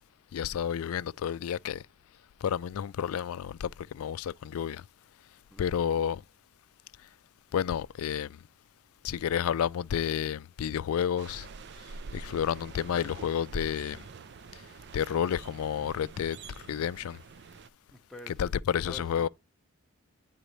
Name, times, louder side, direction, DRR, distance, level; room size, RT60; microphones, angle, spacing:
voice 1, 0.3-1.8 2.4-4.8 5.6-6.2 7.5-8.3 9.0-11.5 12.1-14.0 14.9-16.4 16.7-17.2 18.4-18.5 18.7-19.3, left 8 dB, 80° left, 0.3 m, -30 dB
sound 1, 11.2-17.7, right 4 dB, 50° right, 0.4 m, -46 dB
voice 2, 17.9-19.3, left 2 dB, ahead, 0.7 m, -48 dB
10.0 x 4.0 x 3.1 m
head